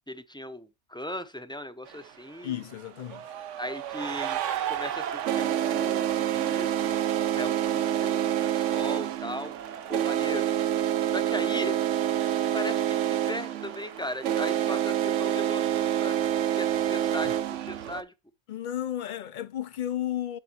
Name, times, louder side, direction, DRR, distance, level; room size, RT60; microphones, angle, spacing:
voice 1, 0.1-2.6 3.6-4.4 4.7-7.0 7.3-9.5 9.9-10.5 11.1-11.8 12.5-16.2 16.6-17.4 17.7-18.1, left 1 dB, 5° left, 0.5 m, -38 dB
sound 1, 1.9-2.0 3.0-18.0, right 11 dB, 75° right, 1.0 m, -27 dB
voice 2, 2.4-3.3 18.5-20.4, left 11 dB, 60° left, 0.5 m, -33 dB
8.2 x 7.8 x 2.9 m
omnidirectional pair, 1.3 m